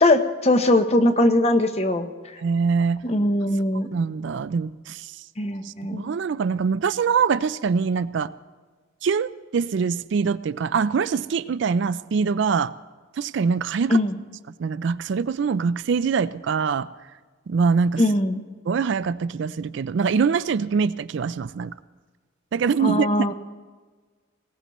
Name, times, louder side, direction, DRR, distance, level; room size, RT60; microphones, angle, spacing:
voice 1, 0.0-2.1 3.0-3.9 5.4-6.0 13.9-14.1 18.0-18.4 22.8-23.3, left 1 dB, 30° left, 8 dB, 0.8 m, -20 dB
voice 2, 2.4-3.0 3.9-5.2 5.6-8.3 9.0-12.7 13.2-14.0 14.6-16.9 17.5-18.0 18.6-21.7 22.5-23.1, right 5 dB, 60° right, 15 dB, 0.4 m, -24 dB
20.0 x 18.5 x 3.1 m, 1.4 s
head